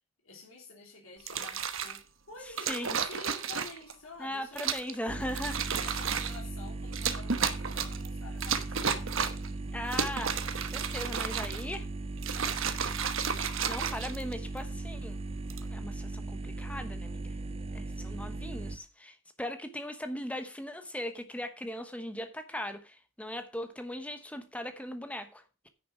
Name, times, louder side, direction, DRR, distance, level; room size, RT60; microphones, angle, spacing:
voice 1, 0.2-2.0 2.3-4.6 5.7-9.1, left 3 dB, 75° left, 3.3 m, -49 dB
sound 1, 1.2-2.0 2.6-3.9 4.6-4.9 5.3-6.4 6.9-8.1 8.4-9.5 9.8-11.8 12.2-14.6 15.3-15.7, right 7 dB, 75° right, 1.1 m, -32 dB
voice 2, 2.7-3.0 4.2-5.6 9.7-11.9 13.2-15.2 15.7-17.4 17.7-25.7, left 1 dB, 5° left, 1.1 m, -39 dB
sound 2, 5.1-18.8, right 2 dB, 25° right, 0.5 m, -38 dB
10.0 x 6.5 x 5.8 m
head